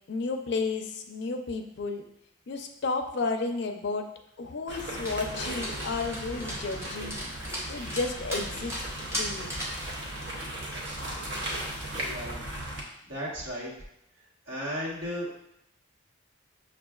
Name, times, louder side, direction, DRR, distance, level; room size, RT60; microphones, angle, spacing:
voice 1, 0.1-2.0 2.5-4.0 4.4-7.2 7.7-9.5, left 3 dB, 60° left, 5 dB, 0.4 m, -32 dB
sound 1, 4.7-12.8, right 1 dB, 60° right, 0.7 m, -37 dB
Dog, 5.0-9.8, equal, 15° right, 0.6 m, -37 dB
voice 2, 12.0-12.4 13.1-13.7 14.5-15.3, equal, 90° right, -7 dB, 1.3 m, -34 dB
6.0 x 2.4 x 2.3 m, 0.78 s
head